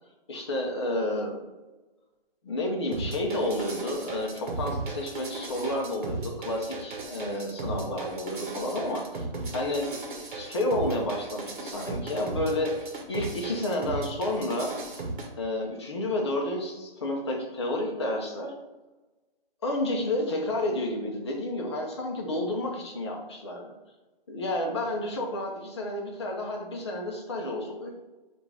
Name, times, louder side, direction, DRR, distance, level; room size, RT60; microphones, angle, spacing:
voice 1, 0.3-1.4 2.4-9.3 9.5-9.9 10.3-14.8 15.4-18.5 19.6-23.7 24.3-27.9, left 1 dB, 30° left, 0 dB, 0.7 m, -30 dB
sound 1, 2.9-15.3, right 3 dB, 55° right, 1.0 m, -36 dB
5.7 x 2.6 x 3.4 m, 1.1 s
hypercardioid pair, 165°, 29 cm